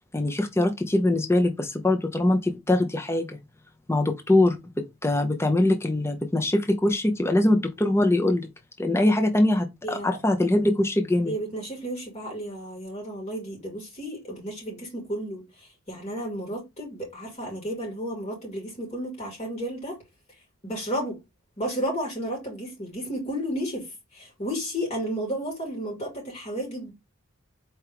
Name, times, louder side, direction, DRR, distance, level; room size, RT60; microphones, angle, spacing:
voice 1, 0.1-3.4 3.9-8.5 8.8-11.3, left 1 dB, 10° left, 0.6 m, -23 dB
voice 2, 9.8-10.2 11.2-20.0 20.6-21.2 21.6-26.9, equal, 30° left, 2.7 m, -32 dB
4.5 x 3.5 x 3.4 m
head